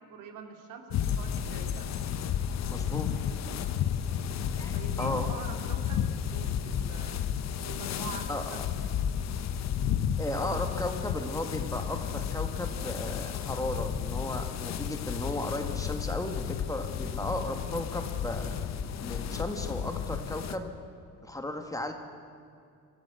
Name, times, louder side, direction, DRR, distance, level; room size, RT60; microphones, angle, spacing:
voice 1, 0.0-1.9 4.7-7.3 7.6-9.2, right 5 dB, 70° right, 4 dB, 2.8 m, -45 dB
sound 1, 0.9-20.6, left 8 dB, 55° left, 1.1 m, -32 dB
voice 2, 2.7-3.3 4.6-5.2 8.3-8.7 10.2-18.5 19.0-20.7 21.2-21.9, left 1 dB, 10° left, 5 dB, 1.8 m, -35 dB
25.0 x 14.5 x 8.3 m, 2.3 s
cardioid pair, 120°, 33 cm